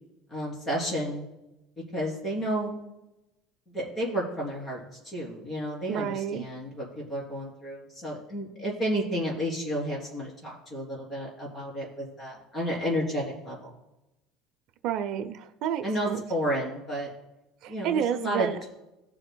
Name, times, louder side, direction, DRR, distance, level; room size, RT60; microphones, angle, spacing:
voice 1, 0.3-1.2 1.9-2.7 3.7-13.7 15.8-17.1 17.7-18.7, equal, 20° left, -3 dB, 3.3 m, -31 dB
voice 2, 5.9-6.5 14.8-16.2 17.6-18.6, right 9 dB, 50° right, 8 dB, 0.6 m, -30 dB
17.5 x 7.1 x 2.3 m, 0.96 s
cardioid pair, 165°, 0 cm